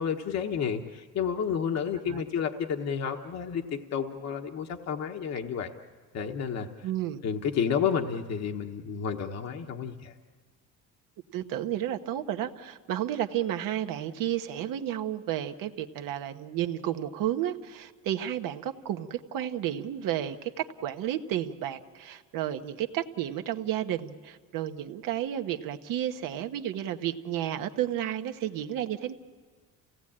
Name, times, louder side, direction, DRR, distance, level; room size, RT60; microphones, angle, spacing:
voice 1, 0.0-3.6 3.9-5.7 6.1-6.7 7.2-10.1, left 7 dB, 50° left, 4 dB, 1.2 m, -30 dB
voice 2, 6.8-7.2 11.3-29.1, right 11 dB, 75° right, 7 dB, 1.2 m, -32 dB
28.5 x 17.5 x 8.7 m, 1.5 s
cardioid pair, 115°, 34 cm